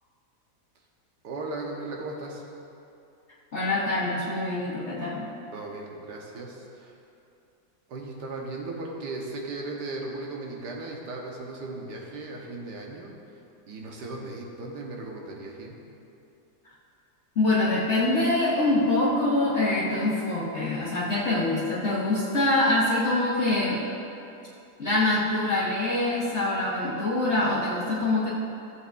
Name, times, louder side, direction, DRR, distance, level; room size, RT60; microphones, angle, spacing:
voice 1, 1.2-2.4 5.5-6.9 7.9-13.2 13.7-15.8, right 2 dB, 85° right, -1 dB, 1.7 m, -37 dB
voice 2, 3.5-5.3 17.3-23.8 24.8-28.3, left 2 dB, 45° left, -8 dB, 1.3 m, -24 dB
15.0 x 7.9 x 2.6 m, 2.8 s
omnidirectional pair, 1.8 m